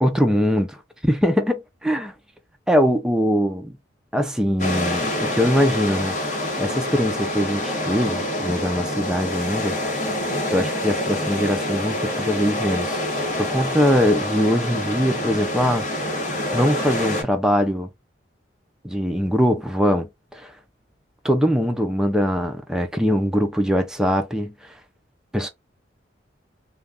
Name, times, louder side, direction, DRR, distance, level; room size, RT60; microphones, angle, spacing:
voice 1, 0.0-0.8 1.0-2.1 2.7-3.8 4.1-9.8 10.5-13.0 13.4-16.2 16.5-17.9 18.8-20.5 21.2-24.7 25.3-25.5, equal, 5° right, 0.3 m, -22 dB
sound 1, 4.6-17.2, left 1 dB, 40° left, 1.0 m, -26 dB
2.3 x 2.2 x 3.4 m
head